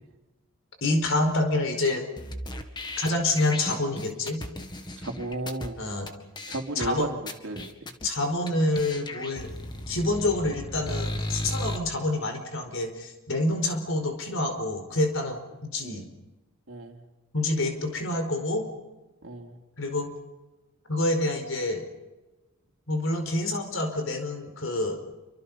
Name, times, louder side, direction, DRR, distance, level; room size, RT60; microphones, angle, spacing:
voice 1, 0.8-2.1 3.0-4.4 5.8-6.1 6.7-7.1 8.0-9.5 9.9-16.1 17.3-18.7 19.8-20.1 20.9-21.8 22.9-25.0, left 2 dB, 65° left, 6 dB, 5.0 m, -27 dB
sound 1, 2.2-5.7 6.1-6.2 6.4-6.9 7.3-8.1 8.5-8.6 8.8-11.8, left 1 dB, 20° left, 2.0 m, -35 dB
voice 2, 5.0-5.8 6.5-7.1 7.4-7.9 15.8-16.0 16.7-17.0 19.2-19.6, right 2 dB, 65° right, 2 dB, 3.5 m, -34 dB
28.5 x 25.5 x 5.6 m, 1.1 s
head